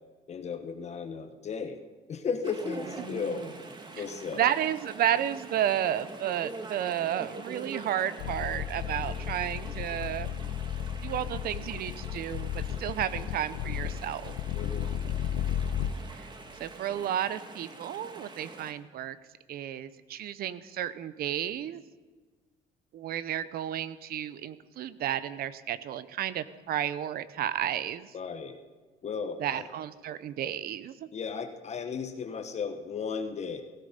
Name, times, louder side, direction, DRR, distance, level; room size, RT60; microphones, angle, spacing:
voice 1, 0.3-1.8 2.1-3.5 3.9-4.5 14.5-14.9 28.1-28.6 29.0-29.7 31.1-33.6, left 5 dB, 40° left, 7 dB, 1.3 m, -35 dB
Chatter / Stream, 2.4-18.7, right 3 dB, 25° right, 1.8 m, -45 dB
voice 2, 4.3-10.3 11.0-14.4 16.1-16.3 16.6-19.2 19.5-21.8 22.9-28.1 29.4-31.1, right 10 dB, 65° right, 16 dB, 0.8 m, -32 dB
sound 1, 8.2-15.9, left 10 dB, 90° left, 0.8 m, -34 dB
17.0 x 16.0 x 5.3 m, 1.3 s
cardioid pair, 110°, 17 cm